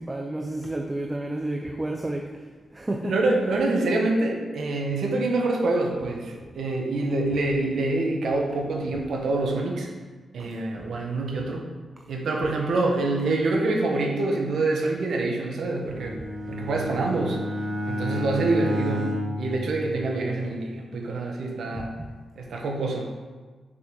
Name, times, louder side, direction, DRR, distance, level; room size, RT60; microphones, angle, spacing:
voice 1, 0.0-2.4 2.7-3.1 10.4-10.6 21.7-22.1, right 1 dB, 15° right, 3 dB, 0.6 m, -31 dB
voice 2, 3.0-9.9 10.3-11.7 12.1-16.2 16.5-17.4 17.9-21.9 22.3-23.1, right 2 dB, 80° right, 1 dB, 1.5 m, -26 dB
Bowed string instrument, 15.8-20.4, equal, 55° right, 1.8 m, -31 dB
7.0 x 6.3 x 5.4 m, 1.4 s
wide cardioid pair, 125°, 0 cm